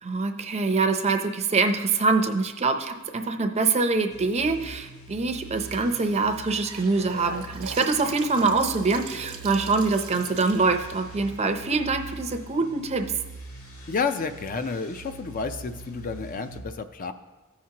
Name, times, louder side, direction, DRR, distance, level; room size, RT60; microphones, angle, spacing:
voice 1, 0.0-13.1, right 3 dB, 30° right, 6 dB, 0.5 m, -24 dB
sound 1, 4.1-16.6, right 3 dB, 70° left, 2.0 m, -43 dB
Gurgling / Sink (filling or washing) / Bathtub (filling or washing), 6.3-12.3, right 4 dB, 80° right, 0.9 m, -41 dB
voice 2, 13.9-17.1, left 4 dB, 40° left, 9 dB, 0.4 m, -30 dB
15.0 x 5.8 x 2.8 m, 1.2 s
head